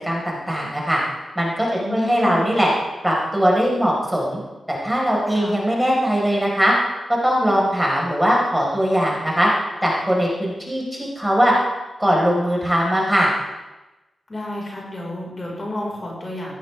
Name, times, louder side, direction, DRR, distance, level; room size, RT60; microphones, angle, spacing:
voice 1, 0.0-1.0 1.4-2.7 3.0-4.4 4.7-6.8 7.2-9.5 9.8-11.5 12.0-13.3, equal, 10° right, -3 dB, 5.2 m, -20 dB
voice 2, 1.7-2.4 5.3-5.6 14.3-16.5, left 1 dB, 35° left, -3 dB, 5.4 m, -30 dB
16.5 x 14.0 x 3.7 m, 1.1 s
cardioid pair, 55°, 0 cm